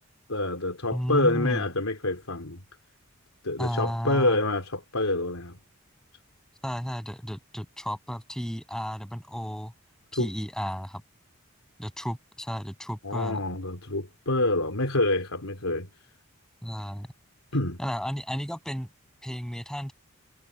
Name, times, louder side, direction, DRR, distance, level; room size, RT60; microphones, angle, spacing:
voice 1, 0.3-2.6 3.4-5.6 10.1-10.3 13.0-15.9 17.5-17.8, left 2 dB, 80° left, 3.4 m, -27 dB
voice 2, 0.9-1.6 3.6-4.4 6.6-9.7 10.1-11.0 11.8-13.4 16.6-17.1 17.8-18.9 19.2-19.9, equal, 5° left, 8.0 m, -33 dB
head